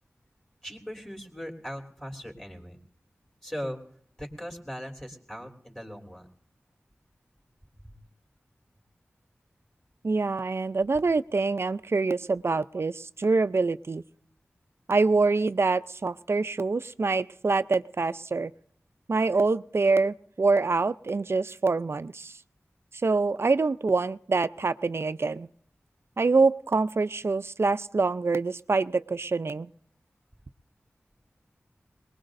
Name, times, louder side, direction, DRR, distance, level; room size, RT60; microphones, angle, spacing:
voice 1, 0.6-2.8 3.4-3.8 4.2-6.3 7.8-8.0, equal, 10° left, 0 dB, 3.5 m, -39 dB
voice 2, 10.0-14.0 14.9-18.5 19.1-22.3 23.0-25.5 26.2-29.7, right 3 dB, 55° right, 13 dB, 0.5 m, -25 dB
22.5 x 20.5 x 2.6 m, 0.65 s
wide cardioid pair, 55°, 5 cm